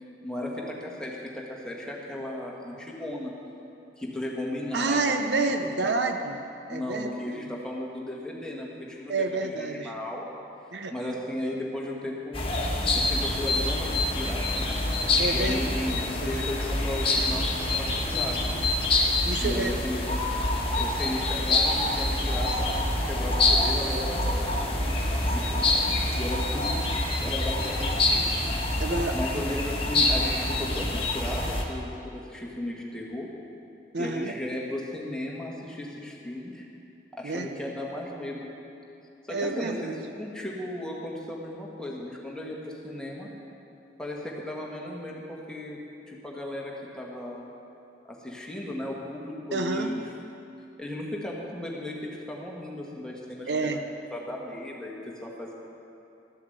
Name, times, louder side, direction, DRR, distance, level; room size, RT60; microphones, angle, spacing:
voice 1, 0.2-3.3 4.0-5.5 5.8-6.0 6.7-10.3 10.9-12.5 12.9-14.8 15.3-18.4 19.4-20.2 20.7-24.5 25.3-25.6 26.1-28.4 28.7-28.8 29.1-33.3 34.0-36.6 37.2-38.4 39.3-39.9 40.2-43.3 44.0-45.8 46.1-47.4 48.1-50.0 50.8-53.8 54.1-55.0 55.2-55.5, left 1 dB, 5° left, -3 dB, 1.6 m, -35 dB
voice 2, 4.7-6.4 6.7-7.5 9.1-9.9 10.7-10.9 15.2-15.8 16.1-16.3 18.9-19.7 28.8-29.4 33.9-34.3 37.2-37.5 39.3-40.0 49.5-49.9 53.5-53.8, right 3 dB, 75° right, 6 dB, 0.8 m, -29 dB
sound 1, 12.3-31.6, left 2 dB, 30° left, 1.5 m, -26 dB
13.0 x 7.4 x 7.9 m, 2.8 s
head